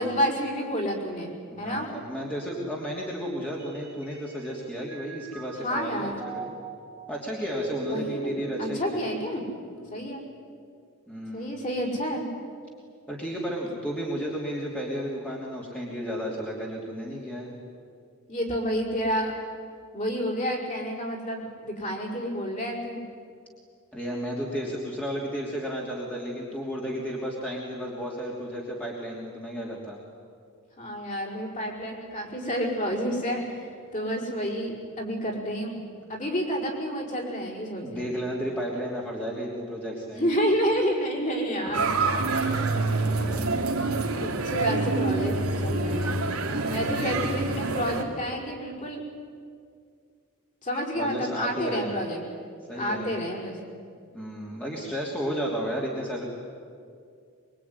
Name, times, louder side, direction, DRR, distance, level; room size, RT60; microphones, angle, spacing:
voice 1, 0.0-1.9 5.6-6.1 7.9-8.3 8.6-9.4 9.9-10.2 11.3-12.3 18.3-19.3 19.9-23.0 30.8-35.8 36.1-38.1 40.1-41.9 43.1-43.5 44.2-46.2 46.7-49.0 50.6-52.2 52.8-53.6, equal, 35° left, -2 dB, 5.4 m, -29 dB
voice 2, 1.5-6.5 7.1-9.0 9.8-10.0 11.1-11.5 13.1-17.5 23.9-30.0 37.8-40.2 42.5-43.4 46.4-46.8 50.9-51.9 52.7-53.2 54.1-56.3, equal, 5° left, -4 dB, 3.1 m, -33 dB
Mallet percussion, 3.6-4.5 4.9-10.3, right 1 dB, 10° right, 2.9 m, -39 dB
sound 1, 41.7-48.0, right 3 dB, 75° right, 2.9 m, -26 dB
23.5 x 23.5 x 9.7 m, 2.2 s
head